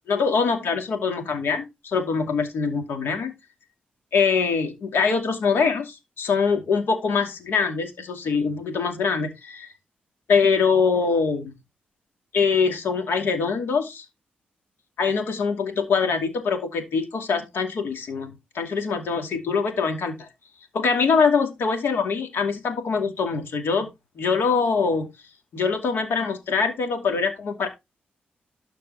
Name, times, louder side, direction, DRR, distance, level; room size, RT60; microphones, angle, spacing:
voice 1, 0.1-3.3 4.1-9.7 10.3-11.5 12.3-14.1 15.0-20.3 20.7-23.9 24.2-25.1 25.5-27.7, left 5 dB, 80° left, 2.5 m, -23 dB
12.5 x 4.6 x 4.0 m
cardioid pair, 60°, 4 cm